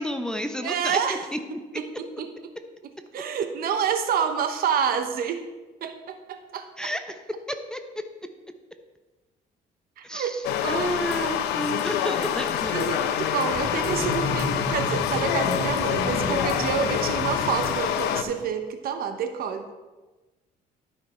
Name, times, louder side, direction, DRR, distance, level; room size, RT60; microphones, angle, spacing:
voice 1, 0.0-1.0 1.3-1.4 6.8-7.2 7.5-7.8 10.0-12.8, equal, 5° left, 6 dB, 0.7 m, -31 dB
voice 2, 0.6-1.2 1.7-2.3 3.1-5.4 5.8-6.9 10.0-10.4 10.6-11.6 12.7-19.8, right 7 dB, 60° right, 8 dB, 1.0 m, -28 dB
sound 1, 10.4-18.2, left 10 dB, 90° left, 0.7 m, -26 dB
sound 2, 12.4-12.7 13.5-18.5, left 1 dB, 25° left, 2.3 m, -32 dB
12.5 x 5.7 x 4.3 m, 1.2 s
cardioid pair, 110°, 17 cm